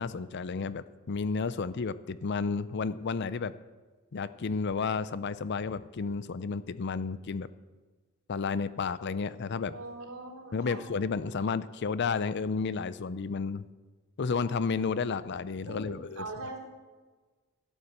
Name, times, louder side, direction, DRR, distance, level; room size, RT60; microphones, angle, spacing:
voice 1, 0.0-3.5 4.1-7.5 8.3-9.7 10.5-13.6 14.2-16.2, left 5 dB, 55° left, 16 dB, 0.5 m, -32 dB
voice 2, 9.7-10.8 15.6-16.6, right 2 dB, 80° right, -2 dB, 4.0 m, -41 dB
12.0 x 8.7 x 8.0 m, 1.3 s
head